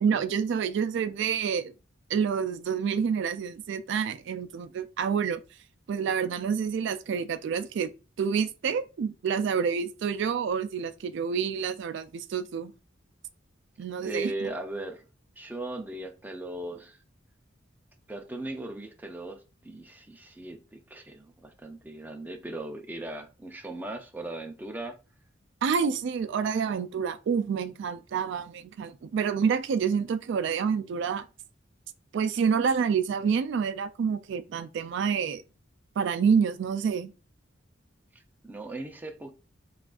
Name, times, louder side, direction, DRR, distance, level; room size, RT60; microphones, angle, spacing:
voice 1, 0.0-1.7 2.1-5.4 5.9-7.9 8.2-12.7 13.8-14.3 25.6-31.3 32.1-35.4 36.0-37.1, right 6 dB, 65° right, 0.3 m, -28 dB
voice 2, 14.0-15.0 15.4-17.0 18.1-25.0 38.1-39.3, right 2 dB, 10° right, 0.5 m, -38 dB
5.8 x 2.4 x 2.4 m
head